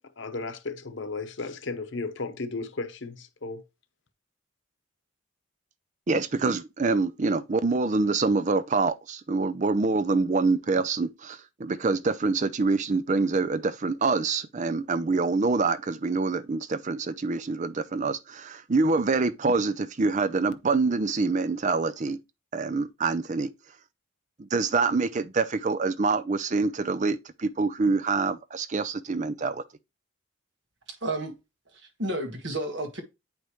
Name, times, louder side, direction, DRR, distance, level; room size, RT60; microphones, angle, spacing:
voice 1, 0.2-3.6, left 3 dB, 60° left, 0.9 m, -34 dB
voice 2, 6.1-22.2 22.5-23.5 24.4-29.6, right 3 dB, 35° right, 0.5 m, -26 dB
voice 3, 31.0-31.3 31.7-33.0, right 1 dB, 55° right, 1.6 m, -31 dB
8.8 x 5.2 x 3.1 m
head